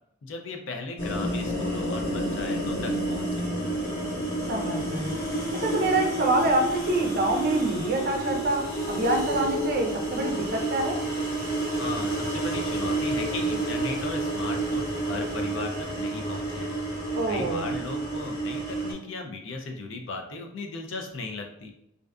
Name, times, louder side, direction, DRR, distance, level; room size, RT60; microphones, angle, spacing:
voice 1, 0.2-3.5 11.8-16.8 17.3-21.7, left 3 dB, 70° left, 4 dB, 0.4 m, -37 dB
sound 1, 1.0-18.9, right 1 dB, 50° left, 1.4 m, -29 dB
voice 2, 4.5-5.2 5.5-11.0 17.1-17.7, right 2 dB, 50° right, 1 dB, 0.5 m, -26 dB
2.5 x 2.4 x 2.2 m, 0.80 s
head